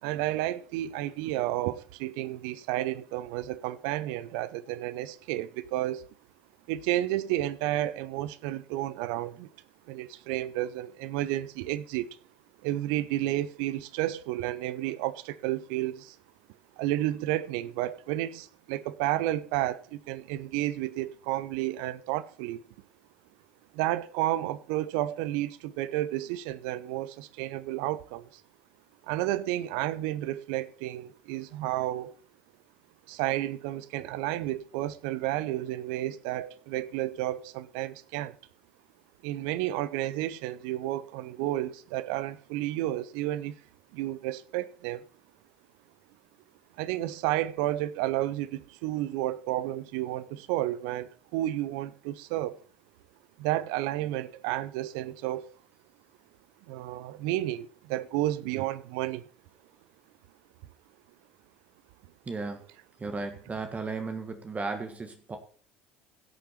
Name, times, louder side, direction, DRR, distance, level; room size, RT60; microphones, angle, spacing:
voice 1, 0.0-6.1 6.7-9.5 9.9-12.2 12.6-16.2 16.8-22.6 23.7-28.4 29.0-32.1 33.1-38.4 39.2-43.5 43.9-45.0 46.8-52.6 53.4-55.5 56.7-59.3, right 15 dB, 65° right, 0.7 m, -31 dB
voice 2, 62.3-62.6 63.0-65.4, right 3 dB, 25° right, 1.7 m, -35 dB
16.5 x 6.8 x 4.5 m
figure-of-eight pair, 60°, 6 cm